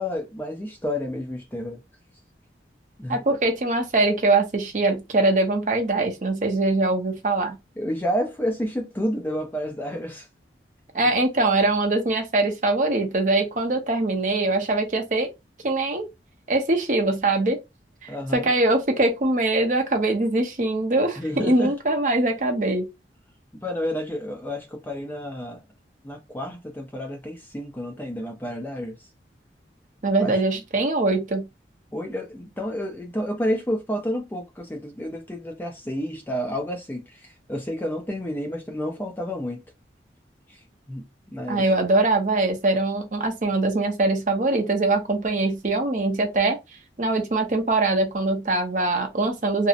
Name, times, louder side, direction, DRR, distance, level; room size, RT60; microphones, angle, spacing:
voice 1, 0.0-1.8 3.0-3.2 7.8-10.3 18.1-18.5 21.2-21.7 23.6-25.6 26.0-29.0 30.2-30.4 31.9-39.6 40.5-40.6 40.9-41.7, equal, 10° left, 0.4 m, -30 dB
voice 2, 3.1-7.6 10.9-15.3 15.6-16.1 16.5-17.6 18.0-22.9 30.0-31.5 41.5-46.6 47.0-49.7, right 2 dB, 45° right, 0.6 m, -22 dB
2.6 x 2.0 x 2.4 m
head